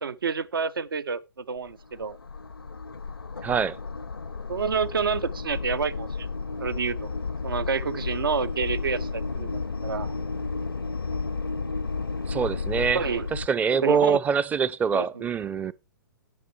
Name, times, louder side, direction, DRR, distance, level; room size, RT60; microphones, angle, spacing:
voice 1, 0.0-2.2 4.5-6.3 6.6-7.1 7.4-10.1 12.9-13.3 13.7-14.2 14.9-15.2, right 5 dB, 75° right, 0.6 m, -29 dB
sound 1, 1.6-13.5, left 4 dB, 90° left, 0.6 m, -32 dB
voice 2, 3.4-3.8 12.3-13.0 13.3-15.7, right 6 dB, 15° right, 0.4 m, -24 dB
18.5 x 6.2 x 3.1 m
figure-of-eight pair, 115°, 12 cm